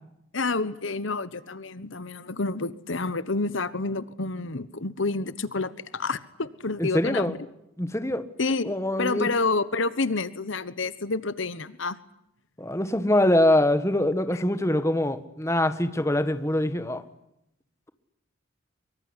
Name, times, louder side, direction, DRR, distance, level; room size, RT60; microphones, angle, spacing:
voice 1, 0.3-7.4 8.4-12.0 14.3-14.4, left 3 dB, 65° left, 15 dB, 1.2 m, -29 dB
voice 2, 6.8-7.4 7.8-8.2 8.6-9.3 12.6-17.0, left 1 dB, 15° left, 10 dB, 1.6 m, -24 dB
24.5 x 24.0 x 9.9 m, 0.81 s
head